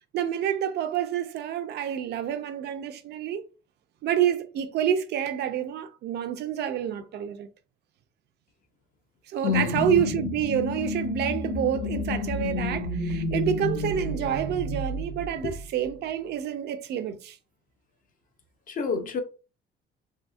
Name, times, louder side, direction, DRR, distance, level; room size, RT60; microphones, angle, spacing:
voice 1, 0.1-3.4 4.0-7.5 9.3-17.4, right 9 dB, 60° right, 0.4 m, -28 dB
voice 2, 9.4-9.9 15.4-15.5 18.7-19.2, left 6 dB, 45° left, 0.5 m, -27 dB
sound 1, 9.5-15.9, left 2 dB, 80° left, 0.9 m, -31 dB
2.7 x 2.6 x 2.3 m
cardioid pair, 145°, 19 cm